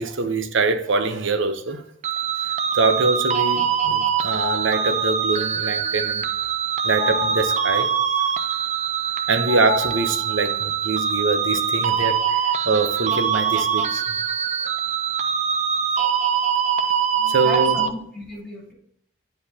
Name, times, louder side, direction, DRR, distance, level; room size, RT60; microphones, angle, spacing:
voice 1, 0.0-1.8 2.4-6.2 6.8-7.9 9.3-14.2 16.0-16.1 17.3-17.8, right 3 dB, 65° right, 0.8 m, -24 dB
sound 1, 2.0-17.9, right 7 dB, 35° right, 0.4 m, -23 dB
sound 2, 4.3-5.3 7.0-8.0 9.5-10.6, left 7 dB, 90° left, 1.1 m, -31 dB
voice 2, 17.2-18.7, left 1 dB, ahead, 3.1 m, -34 dB
9.8 x 5.0 x 2.8 m
head